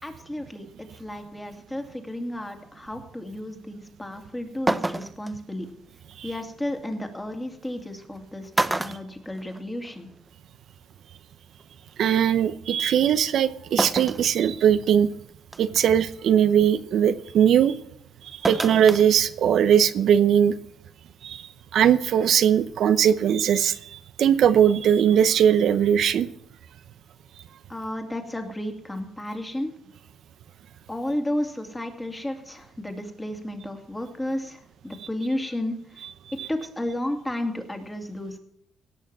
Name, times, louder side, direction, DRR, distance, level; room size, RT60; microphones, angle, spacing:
voice 1, 0.0-5.7 6.2-10.1 27.7-29.7 30.9-36.0 36.5-38.4, left 1 dB, 10° left, 4 dB, 2.6 m, -32 dB
sound 1, 4.1-4.2 4.7-5.3 6.9-7.0 8.0-8.2 8.5-9.9 10.3-10.4 11.6-11.7 13.8-14.3 14.8-14.9 15.5-15.8 18.4-19.1 19.4-19.5, right 2 dB, 15° right, 0.7 m, -27 dB
voice 2, 12.0-15.1 15.6-17.7 18.2-20.5 21.2-26.3 36.4-36.5, right 9 dB, 70° right, 12 dB, 0.7 m, -20 dB
17.5 x 6.5 x 7.5 m, 0.76 s
cardioid pair, 90°, 0 cm